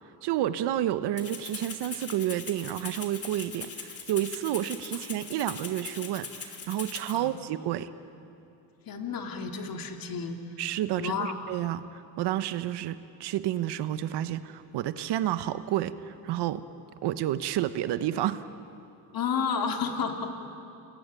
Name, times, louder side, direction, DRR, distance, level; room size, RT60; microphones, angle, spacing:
voice 1, 0.2-7.9 10.6-16.7 17.0-18.5, right 12 dB, 85° right, 12 dB, 1.2 m, -30 dB
Rattle (instrument), 1.2-7.2, left 5 dB, 35° left, 3.0 m, -40 dB
voice 2, 8.9-10.4 10.9-11.4 19.1-20.3, left 6 dB, 60° left, 4 dB, 2.8 m, -31 dB
29.5 x 20.5 x 9.1 m, 2.6 s
cardioid pair, 105°, 40 cm